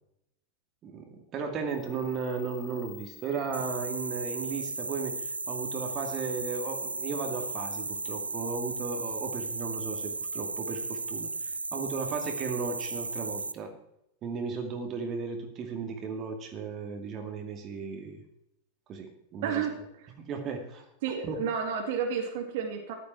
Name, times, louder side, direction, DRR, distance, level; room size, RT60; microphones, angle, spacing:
voice 1, 0.8-13.7 14.2-18.2 18.9-19.6 20.2-20.9 21.2-21.4, right 5 dB, 30° right, 4 dB, 2.4 m, -35 dB
sound 1, 1.7-8.2, left 11 dB, 20° left, 3.9 m, -50 dB
sound 2, 3.5-13.5, right 3 dB, 80° right, 0.5 m, -35 dB
voice 2, 19.4-20.1 21.0-22.9, right 7 dB, 50° right, 3 dB, 2.3 m, -31 dB
14.5 x 12.0 x 4.6 m, 0.81 s
figure-of-eight pair, 90°, 0 cm